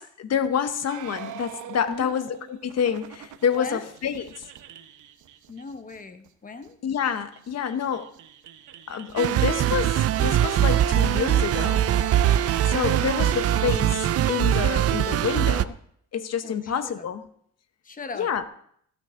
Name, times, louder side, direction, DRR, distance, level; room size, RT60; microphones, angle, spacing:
voice 1, 0.0-3.7 4.0-4.2 6.8-8.1 8.9-11.9 12.2-15.7 16.1-17.2 18.2-18.4, left 7 dB, 55° left, 1.1 m, -28 dB
sound 1, 0.9-6.0 6.2-6.3 6.6-6.7 7.0-13.7, right 9 dB, 75° right, 1.1 m, -42 dB
voice 2, 1.9-2.2 3.5-3.9 5.5-6.8 16.4-17.1 17.8-18.4, left 4 dB, 25° left, 1.2 m, -38 dB
sound 2, 9.2-15.6, right 11 dB, 55° right, 0.5 m, -22 dB
16.0 x 9.2 x 3.8 m
cardioid pair, 90°, 30 cm